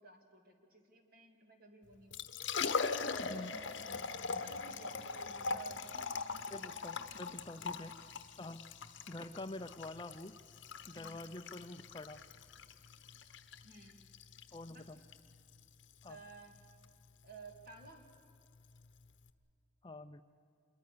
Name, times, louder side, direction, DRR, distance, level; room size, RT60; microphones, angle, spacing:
voice 1, 0.0-2.3 2.8-3.8 4.4-6.8 7.6-7.8 10.9-11.3 13.6-14.0 14.7-14.9 16.1-16.6 17.2-18.1, right 3 dB, 45° right, 3 dB, 2.8 m, -56 dB
Liquid, 1.9-19.3, left 5 dB, 65° left, 1.1 m, -42 dB
voice 2, 3.2-3.5 6.5-8.0 8.4-8.7 9.1-10.4 10.9-12.2 14.5-15.0 16.0-16.2 19.8-20.2, left 2 dB, 25° left, 9 dB, 0.5 m, -46 dB
26.5 x 22.5 x 6.8 m, 2.5 s
head